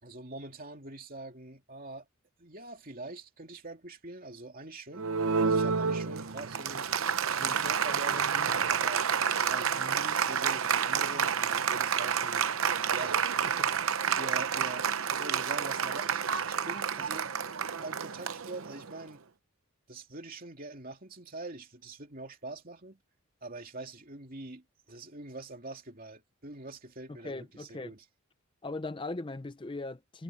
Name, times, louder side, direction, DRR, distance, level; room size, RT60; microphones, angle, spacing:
voice 1, 0.0-2.1 2.4-5.1 5.4-9.0 9.5-12.4 12.9-14.9 15.2-19.2 19.9-23.0 23.4-28.0, right 2 dB, 40° right, 2.8 m, -44 dB
Applause, 4.9-19.0, right 7 dB, 65° right, 0.8 m, -29 dB
voice 2, 27.2-27.9 28.6-30.2, left 2 dB, 20° left, 0.5 m, -38 dB
head